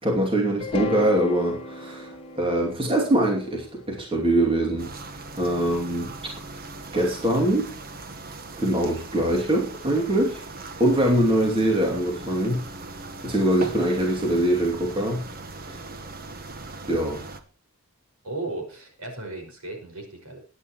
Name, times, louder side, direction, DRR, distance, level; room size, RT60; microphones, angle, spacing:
voice 1, 0.0-4.9 5.4-6.1 6.9-7.7 8.6-10.4 10.8-12.6 13.2-15.2 15.7-15.8 16.9-17.2, right 1 dB, 25° right, 0 dB, 2.7 m, -23 dB
sound 1, 0.6-4.8, left 3 dB, 25° left, 2.3 m, -35 dB
sound 2, 4.8-17.4, right 3 dB, 40° right, 1.3 m, -39 dB
voice 2, 18.2-20.4, right 2 dB, 80° right, 3 dB, 5.8 m, -35 dB
21.5 x 9.8 x 3.1 m, 0.35 s
head